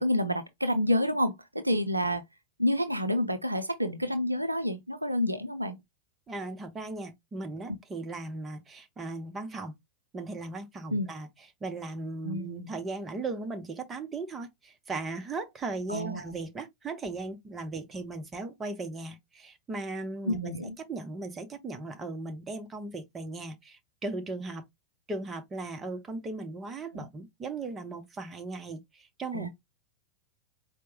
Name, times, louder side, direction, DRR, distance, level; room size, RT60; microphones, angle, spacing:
voice 1, 0.0-2.2 2.6-5.8 10.9-11.1 12.2-12.7 15.9-16.2 20.3-20.7 26.9-27.1 29.3-29.5, equal, 85° right, 0.5 m, -29 dB
voice 2, 6.3-9.7 10.1-11.3 11.6-24.6 25.1-29.5, right 3 dB, 20° right, 0.7 m, -37 dB
4.5 x 2.1 x 3.0 m
figure-of-eight pair, 90°, 0 cm